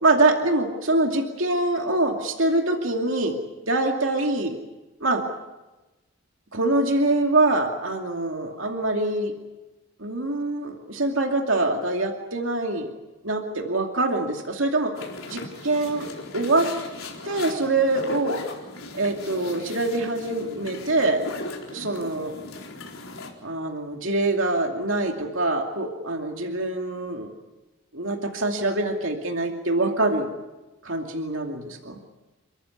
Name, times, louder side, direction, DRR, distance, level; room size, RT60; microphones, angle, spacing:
voice 1, 0.0-3.3 3.7-4.6 5.0-5.2 6.5-9.3 10.0-12.9 13.2-15.0 15.3-16.7 17.2-18.4 18.9-21.2 21.7-22.3 23.4-27.3 27.9-30.3 30.8-32.0, right 2 dB, 65° right, 2 dB, 2.6 m, -24 dB
sound 1, 14.9-23.3, left 2 dB, 80° left, 4.2 m, -38 dB
29.5 x 14.0 x 9.7 m, 1.1 s
head